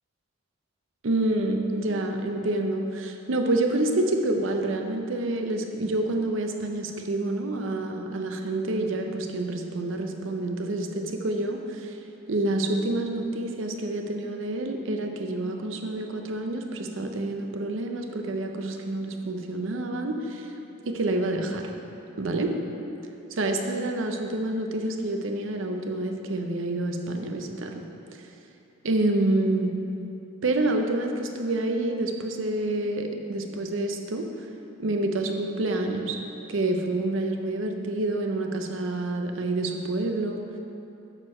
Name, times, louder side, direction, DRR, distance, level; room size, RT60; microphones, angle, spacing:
voice 1, 1.0-12.0 12.3-20.5 20.8-21.7 22.2-22.5 23.3-27.9 28.1-28.2 28.8-29.8 30.4-34.2 34.8-36.2 36.5-40.4, right 2 dB, 70° right, 4 dB, 0.6 m, -28 dB
6.5 x 6.3 x 4.3 m, 2.9 s
head